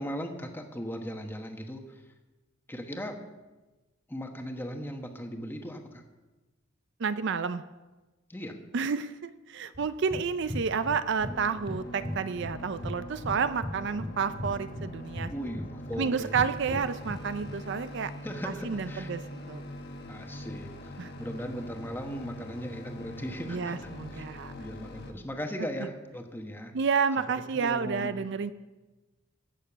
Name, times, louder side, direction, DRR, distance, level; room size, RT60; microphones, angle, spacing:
voice 1, 0.0-2.0 2.7-3.2 4.1-6.0 8.3-8.6 15.3-16.5 18.2-19.1 20.1-24.2 24.6-26.7 27.2-27.3 27.5-28.3, equal, 10° left, 4 dB, 1.2 m, -38 dB
voice 2, 7.0-7.6 8.7-15.3 16.0-18.1 18.6-19.6 21.0-21.1 23.5-24.5 26.7-28.5, right 5 dB, 60° right, 13 dB, 0.5 m, -30 dB
sound 1, 9.7-11.4 11.7-13.0 13.2-17.5, left 1 dB, 30° right, 2.6 m, -37 dB
sound 2, 11.2-25.1, left 1 dB, 50° left, 1.3 m, -43 dB
15.5 x 6.8 x 6.7 m, 1.2 s
head